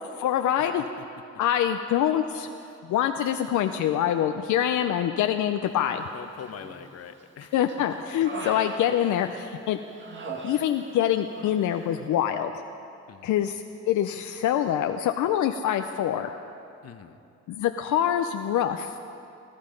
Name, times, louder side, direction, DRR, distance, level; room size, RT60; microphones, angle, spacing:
voice 1, 0.2-0.9 1.4-2.5 2.9-6.0 7.5-9.8 10.4-12.5 13.2-16.3 17.5-19.0, left 10 dB, 75° left, 6 dB, 0.6 m, -25 dB
voice 2, 6.1-7.5 8.4-8.5 9.0-9.2 13.1-13.5 16.8-17.2, left 8 dB, 55° left, 9 dB, 1.0 m, -44 dB
Human voice, 6.4-7.0 7.4-9.5 10.0-11.1 11.3-11.6, right 3 dB, 40° right, 1.7 m, -40 dB
20.5 x 12.0 x 5.2 m, 2.6 s
cardioid pair, 90°, 30 cm